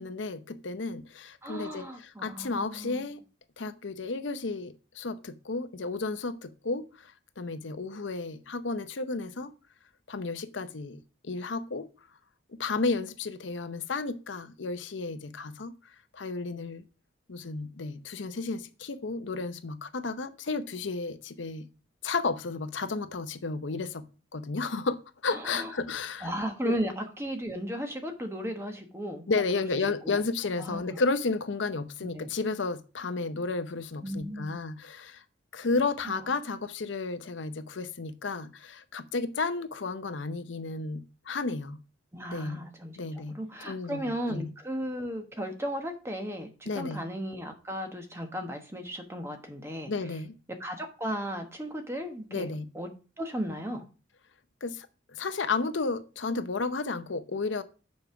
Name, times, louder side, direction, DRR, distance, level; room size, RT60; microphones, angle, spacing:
voice 1, 0.0-3.2 3.6-9.5 10.1-11.9 12.5-15.7 16.1-16.8 17.3-21.7 22.0-24.0 24.3-26.3 26.6-26.8 29.3-35.2 35.5-41.8 42.3-42.6 43.0-43.4 43.6-44.0 44.3-44.5 46.7-47.0 49.9-50.3 52.3-52.7 54.6-54.9 55.1-57.6, left 3 dB, 80° left, 0.7 m, -32 dB
voice 2, 1.4-3.0 25.3-25.7 26.2-29.3 29.6-29.7 30.0-30.2 30.6-31.0 32.1-32.3 34.0-34.5 36.0-36.3 42.1-49.9 50.6-52.5 52.7-52.9 53.2-53.8, equal, 15° right, 1.1 m, -35 dB
7.1 x 5.3 x 5.7 m
head